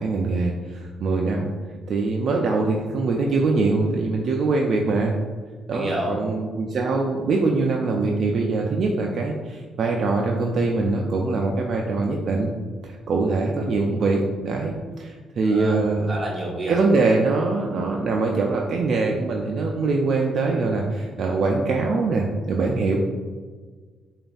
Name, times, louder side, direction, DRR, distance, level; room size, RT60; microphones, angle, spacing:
voice 1, 0.0-1.5 1.9-5.2 5.7-12.5 12.8-16.1 16.7-23.0, right 3 dB, 60° right, 0 dB, 0.3 m, -23 dB
voice 2, 5.7-6.2 15.4-15.8 16.1-16.8, right 1 dB, 30° right, -2 dB, 1.1 m, -28 dB
5.0 x 2.3 x 2.5 m, 1.5 s
cardioid pair, 90°, 0 cm